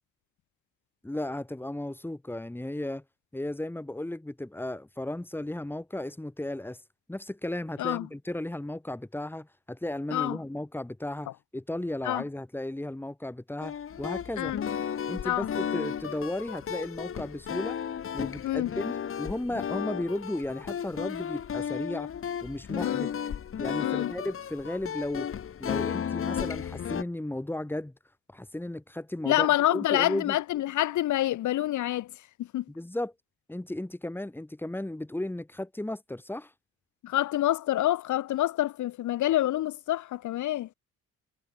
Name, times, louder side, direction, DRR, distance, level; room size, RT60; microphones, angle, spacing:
voice 1, 1.0-3.0 3.3-6.8 7.1-14.6 15.1-17.8 18.1-18.9 19.2-22.1 22.4-23.1 23.6-25.3 25.6-27.9 28.3-29.5 29.7-30.4 32.7-33.1 33.5-36.5, left 1 dB, 5° left, 2.3 m, -35 dB
sound 1, 13.6-27.0, left 8 dB, 45° left, 1.4 m, -34 dB
voice 2, 23.8-24.1 29.3-32.1 32.5-32.6 37.0-40.7, left 14 dB, 75° left, 1.2 m, -27 dB
cardioid pair, 90°, 30 cm